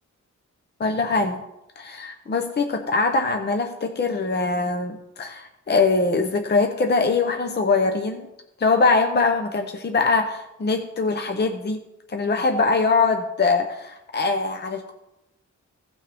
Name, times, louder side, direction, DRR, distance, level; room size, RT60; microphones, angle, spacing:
voice 1, 0.8-1.4 1.8-8.3 8.6-11.8 12.1-14.9, left 4 dB, 35° left, 5 dB, 0.7 m, -22 dB
16.5 x 6.2 x 3.4 m, 0.90 s
wide cardioid pair, 155°, 31 cm